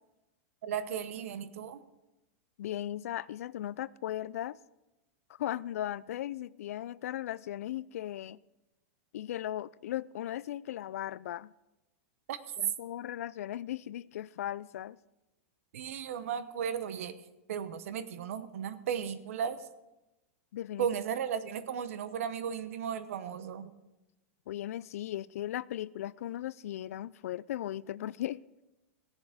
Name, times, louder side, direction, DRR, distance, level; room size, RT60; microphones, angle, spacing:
voice 1, 0.6-1.8 12.3-12.4 15.7-17.1 17.5-19.7 20.8-23.7, right 8 dB, 70° right, 0.9 m, -35 dB
voice 2, 2.6-4.6 5.3-8.4 9.1-11.5 12.6-15.0 20.5-20.9 24.5-28.4, left 12 dB, 85° left, 0.4 m, -37 dB
17.5 x 7.2 x 5.0 m
supercardioid pair, 170°, 8 cm